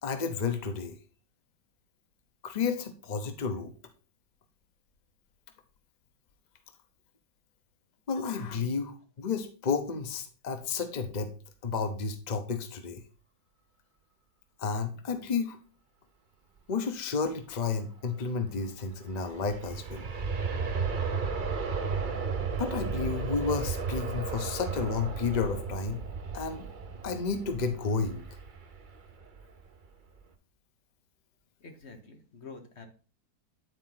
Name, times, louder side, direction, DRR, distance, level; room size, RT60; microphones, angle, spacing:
voice 1, 0.0-1.0 2.4-3.7 8.1-11.3 11.6-13.0 14.6-15.6 16.7-20.0 22.5-26.1 26.3-26.7 27.0-28.3, left 5 dB, 70° left, 8 dB, 0.4 m, -31 dB
Aircraft, 18.9-29.7 30.2-30.3, right 5 dB, 55° right, 0.5 m, -34 dB
voice 2, 31.6-32.9, left 4 dB, 45° left, 4 dB, 1.2 m, -48 dB
9.2 x 4.3 x 3.9 m, 0.37 s
omnidirectional pair, 1.9 m